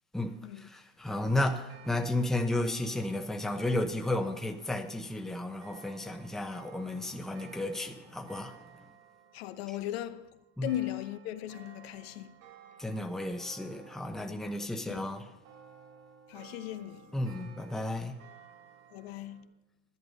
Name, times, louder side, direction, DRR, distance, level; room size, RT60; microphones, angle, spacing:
voice 1, 0.1-8.7 10.6-10.7 12.8-15.3 17.1-18.1, left 1 dB, ahead, 1.0 m, -33 dB
sound 1, 1.4-19.5, right 7 dB, 55° right, 3.0 m, -56 dB
voice 2, 9.3-12.4 14.9-15.1 16.3-17.1 18.9-19.5, left 13 dB, 70° left, 0.9 m, -38 dB
11.0 x 10.5 x 5.2 m
hypercardioid pair, 100°, 32 cm